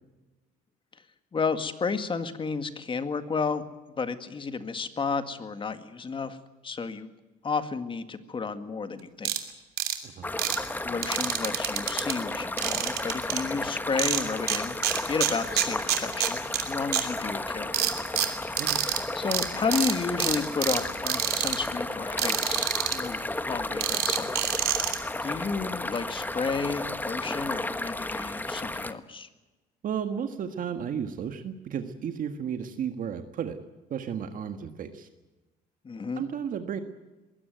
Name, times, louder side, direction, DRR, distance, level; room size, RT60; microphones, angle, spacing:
voice 1, 1.3-3.7 4.0-6.4 6.6-7.1 7.4-9.3 10.8-17.9 19.1-23.2 23.5-24.4 24.8-29.3 35.8-36.2, left 4 dB, 30° left, 10 dB, 1.9 m, -32 dB
sound 1, 9.2-9.4 9.8-10.0 10.4-10.6 11.0-12.1 12.6-13.4 14.0-14.6 14.8-16.6 16.9-17.0 17.7-19.0 19.3-19.4 19.7-19.9 20.2-20.8 21.1-21.6 22.2-22.9 23.8-25.0, right 11 dB, 70° right, 3.0 m, -27 dB
sound 2, 10.2-28.9, left 2 dB, 10° left, 1.3 m, -33 dB
voice 2, 29.8-33.6 33.9-35.1 36.2-36.8, right 8 dB, 55° right, 7 dB, 1.7 m, -33 dB
22.0 x 17.5 x 9.3 m, 1.1 s
cardioid pair, 110°, 17 cm